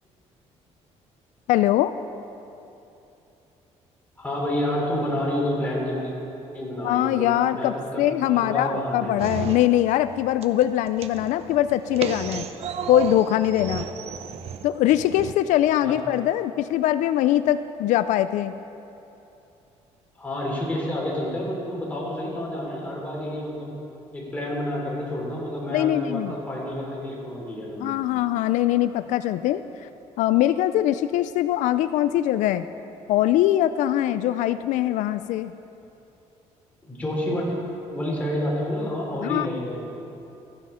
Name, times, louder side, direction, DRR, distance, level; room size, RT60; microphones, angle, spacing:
voice 1, 1.5-1.9 6.8-12.5 12.9-13.9 14.6-18.5 25.7-26.4 27.8-29.9 30.2-32.7 33.1-35.5 39.2-39.6, left 12 dB, 85° left, 12 dB, 0.4 m, -22 dB
voice 2, 4.2-6.1 6.5-9.1 15.8-16.0 20.2-23.7 24.1-28.0 36.9-37.5 37.9-39.8, left 1 dB, 10° left, -4 dB, 3.3 m, -29 dB
sound 1, 9.2-10.1 10.4-15.3, right 7 dB, 55° right, 0.7 m, -33 dB
14.5 x 9.8 x 5.6 m, 2.9 s
cardioid pair, 145°, 12 cm